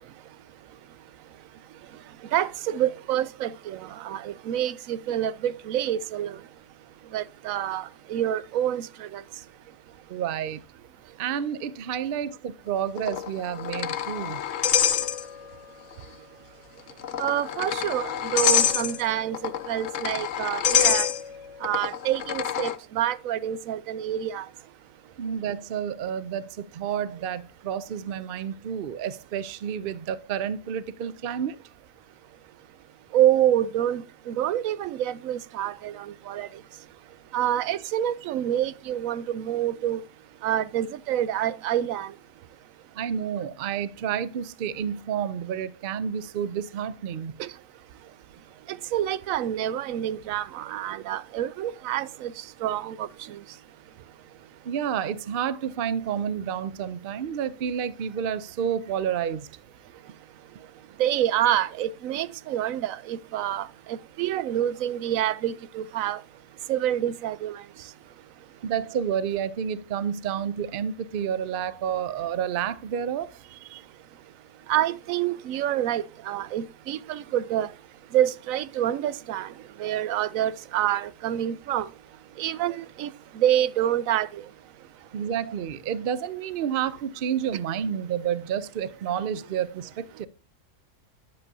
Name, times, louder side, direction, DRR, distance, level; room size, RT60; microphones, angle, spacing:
voice 1, 1.9-6.5 7.0-9.4 17.2-21.1 21.6-24.5 33.1-36.6 37.3-40.0 40.4-42.2 47.4-47.5 48.7-53.6 60.0-60.1 61.0-66.2 66.7-67.9 73.7-73.8 74.7-77.8 78.1-81.9 82.4-84.5, right 11 dB, 90° right, 1.0 m, -27 dB
voice 2, 10.1-10.6 11.2-14.4 25.2-31.6 43.0-47.4 54.6-59.5 68.6-73.3 85.1-90.3, right 8 dB, 55° right, 0.7 m, -30 dB
sound 1, 13.0-15.6 15.9-16.0 16.9-22.8, left 9 dB, 70° left, 1.0 m, -26 dB
9.4 x 7.7 x 2.7 m
omnidirectional pair, 1.4 m